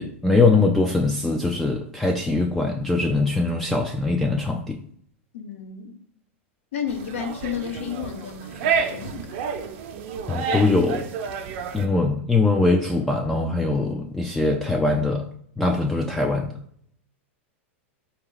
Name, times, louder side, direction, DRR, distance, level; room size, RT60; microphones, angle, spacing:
voice 1, 0.0-4.8 10.3-11.1 11.7-15.2 15.6-16.5, left 3 dB, 5° left, 0.3 m, -22 dB
voice 2, 5.3-6.0 6.7-9.4, left 8 dB, 80° left, 0.8 m, -32 dB
sound 1, 6.9-11.9, right 6 dB, 55° right, 0.6 m, -29 dB
4.1 x 2.9 x 3.7 m
supercardioid pair, 135°, 7 cm